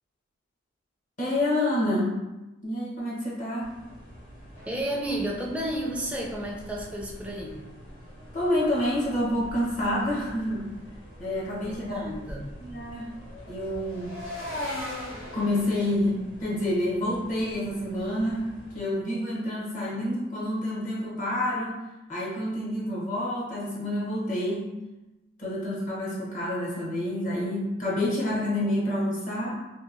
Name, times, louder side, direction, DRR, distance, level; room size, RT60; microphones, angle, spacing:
voice 1, 1.2-2.2 2.6-3.7 8.3-10.7 11.2-12.0 12.6-13.1 13.5-14.1 15.3-18.4 18.7-21.8 22.1-24.8 25.4-29.6, left 1 dB, 40° left, -6 dB, 0.8 m, -28 dB
sound 1, 3.6-18.8, equal, 70° left, 1.0 m, -47 dB
sound 2, 4.5-7.7 8.1-10.0 10.3-10.5 10.9-11.2 12.7-15.9, left 1 dB, 85° left, 0.9 m, -41 dB
voice 2, 4.7-7.7 11.6-12.5, right 1 dB, 5° right, -2 dB, 0.4 m, -32 dB
2.8 x 2.6 x 2.5 m, 1.0 s
head